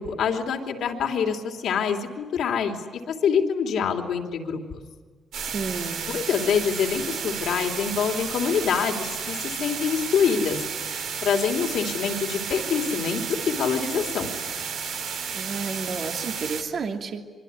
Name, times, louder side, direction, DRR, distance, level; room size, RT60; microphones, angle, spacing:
voice 1, 0.0-2.8 3.1-4.8 6.1-10.6 11.2-14.3, left 6 dB, 70° left, 3 dB, 3.2 m, -25 dB
sound 1, 5.3-16.6, right 6 dB, 80° right, 3.8 m, -32 dB
voice 2, 5.4-6.1 15.3-17.3, right 5 dB, 55° right, 3 dB, 2.8 m, -31 dB
24.5 x 24.0 x 9.8 m, 1.5 s
cardioid pair, 90°, 0 cm